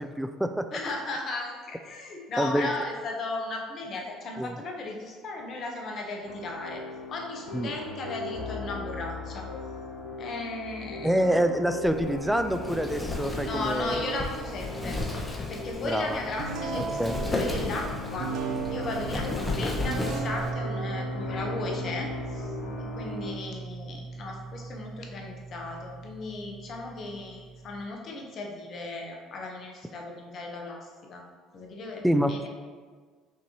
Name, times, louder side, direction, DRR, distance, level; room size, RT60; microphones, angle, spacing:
voice 1, 0.0-0.7 2.4-2.7 4.4-4.6 7.5-7.7 11.0-14.1 15.8-16.2 16.7-17.2 19.6-19.7 32.0-32.5, equal, 5° right, 8 dB, 0.3 m, -27 dB
voice 2, 0.7-6.8 7.1-9.5 10.2-11.1 13.4-15.0 15.5-17.0 17.3-31.2 31.5-32.5, left 2 dB, 50° left, 1 dB, 0.8 m, -36 dB
sound 1, 6.2-23.4, left 3 dB, 80° left, 1.2 m, -39 dB
Wind, 11.8-20.5, left 2 dB, 15° left, 0.8 m, -35 dB
sound 2, 16.4-27.8, right 4 dB, 70° right, 0.5 m, -37 dB
5.9 x 2.7 x 2.9 m, 1.5 s
hypercardioid pair, 70°, 0 cm